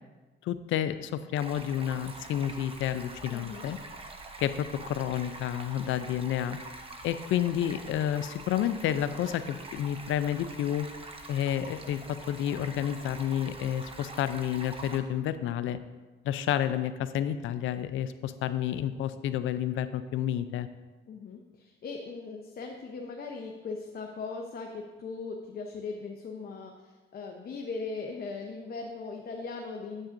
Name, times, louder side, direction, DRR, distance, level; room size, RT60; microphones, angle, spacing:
voice 1, 0.4-3.8 4.4-6.6 7.0-10.9 11.3-15.8 16.2-20.7, left 10 dB, 80° left, 12 dB, 0.5 m, -30 dB
Stream, 1.4-15.0, right 2 dB, 30° right, 0.9 m, -45 dB
voice 2, 3.3-3.6 21.1-30.1, left 4 dB, 50° left, 1 dB, 0.8 m, -39 dB
8.9 x 8.4 x 2.6 m, 1.3 s
cardioid pair, 90°, 20 cm